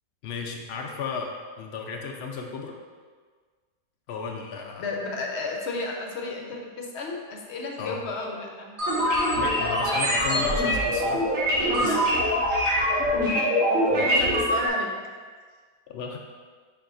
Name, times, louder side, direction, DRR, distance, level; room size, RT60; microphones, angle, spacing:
voice 1, 0.2-2.8 4.1-4.8 7.8-8.0 9.3-11.3 11.8-12.0 13.9-14.3 14.6-14.7 15.9-16.2, left 5 dB, 75° left, 1 dB, 0.5 m, -34 dB
voice 2, 4.8-8.8 9.2-9.5 9.8-10.0 11.8-12.3 13.0-13.5 14.0-14.9, left 3 dB, 55° left, 1 dB, 0.9 m, -34 dB
sound 1, 8.8-14.7, equal, 85° right, 2.3 m, -23 dB
6.9 x 5.5 x 2.5 m, 1.6 s
omnidirectional pair, 1.7 m